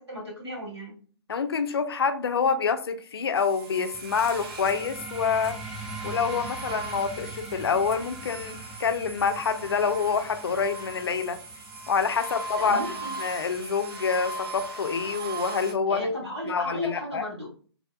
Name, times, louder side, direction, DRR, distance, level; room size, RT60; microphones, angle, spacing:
voice 1, 0.1-1.0 12.6-13.1 15.9-17.5, left 1 dB, 90° right, 1.4 m, -34 dB
voice 2, 1.3-5.6 6.0-11.4 11.9-12.8 13.2-16.1 16.5-17.2, left 5 dB, 65° left, 0.4 m, -27 dB
sound 1, 3.3-15.7, right 2 dB, 60° right, 1.2 m, -39 dB
sound 2, 3.9-15.0, right 2 dB, 5° right, 0.3 m, -43 dB
3.2 x 2.1 x 2.4 m
figure-of-eight pair, 130°, 14 cm